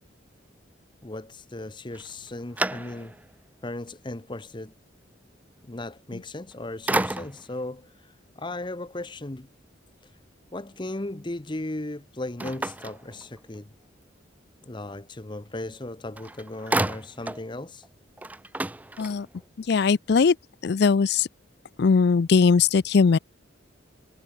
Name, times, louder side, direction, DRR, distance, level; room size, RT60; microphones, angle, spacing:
voice 1, 1.0-3.2 3.6-4.7 5.6-8.1 8.4-9.5 10.5-13.7 14.6-17.8, left 2 dB, 25° left, 0.9 m, -36 dB
sound 1, 1.9-3.3 3.9-4.0 6.2-6.5 6.9-7.6 12.4-13.7 15.8-15.9 16.2-17.5 17.8-17.9 18.2-19.4, right 2 dB, 10° right, 0.3 m, -31 dB
voice 2, 19.7-20.4 20.6-21.3 21.8-23.2, left 5 dB, 55° left, 0.4 m, -20 dB
head